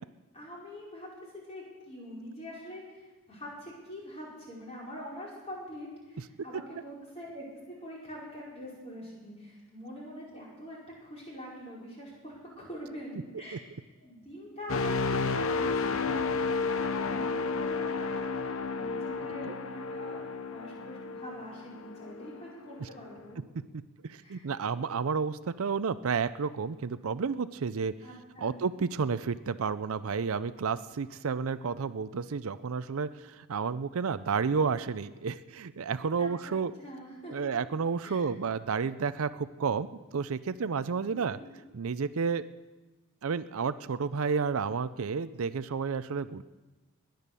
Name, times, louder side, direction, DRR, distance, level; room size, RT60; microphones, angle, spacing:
voice 1, 0.3-13.5 14.0-23.4 24.2-24.4 28.0-28.6 36.2-37.3 38.0-38.2 41.1-41.5, equal, 25° left, -4 dB, 5.1 m, -44 dB
sound 1, 14.7-22.5 23.0-23.2, left 4 dB, 65° left, 0.7 m, -32 dB
voice 2, 24.0-27.9 28.4-36.7 37.3-41.4 41.7-42.4 43.2-46.4, right 5 dB, 70° right, 14 dB, 0.5 m, -31 dB
20.5 x 9.2 x 6.9 m, 1.2 s
head